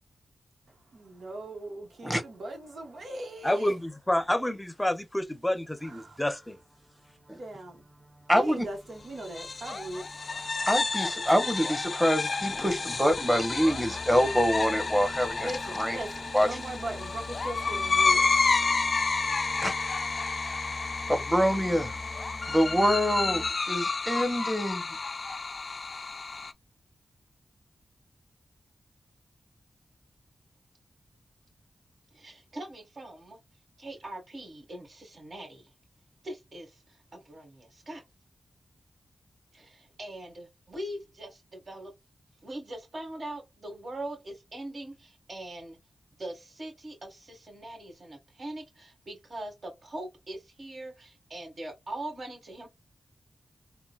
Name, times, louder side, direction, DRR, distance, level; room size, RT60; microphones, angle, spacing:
voice 1, 0.9-3.7 5.8-6.2 7.4-7.8 8.3-10.1 15.0-19.2, right 1 dB, 80° right, 1.1 m, -40 dB
voice 2, 3.4-6.6, left 1 dB, 15° left, 0.7 m, -29 dB
sound 1, 5.4-23.5, left 1 dB, 25° right, 2.2 m, -45 dB
voice 3, 8.3-8.6 10.7-15.5 15.7-16.0 16.3-16.5 19.6-19.7 21.1-22.0 22.5-24.8, equal, 10° right, 1.1 m, -25 dB
sound 2, 9.2-26.5, left 4 dB, 60° left, 0.3 m, -30 dB
voice 4, 32.1-33.4 33.8-35.7 36.2-38.0 39.5-41.9 42.4-45.8 46.2-52.7, right 1 dB, 60° right, 1.8 m, -41 dB
3.7 x 2.2 x 2.3 m
cardioid pair, 55°, 0 cm